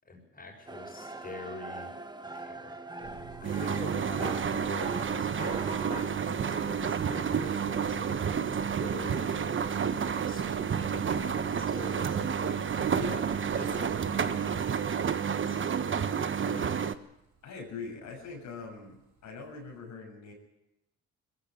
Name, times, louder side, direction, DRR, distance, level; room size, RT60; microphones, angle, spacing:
voice 1, 0.0-1.9 2.3-8.2 8.7-9.5 10.0-12.7 13.6-14.6 15.2-16.1 16.4-16.8, left 3 dB, 30° left, 1 dB, 6.7 m, -45 dB
sound 1, 0.7-7.2, right 2 dB, 15° right, 1.5 m, -43 dB
sound 2, 3.0-19.8, right 7 dB, 75° right, 6.5 m, -50 dB
sound 3, 3.4-16.9, right 7 dB, 40° right, 1.2 m, -30 dB
voice 2, 13.0-13.3 17.4-19.0 19.2-20.3, left 4 dB, 75° left, 0 dB, 7.1 m, -41 dB
21.0 x 15.0 x 9.4 m, 0.87 s
cardioid pair, 90°, 30 cm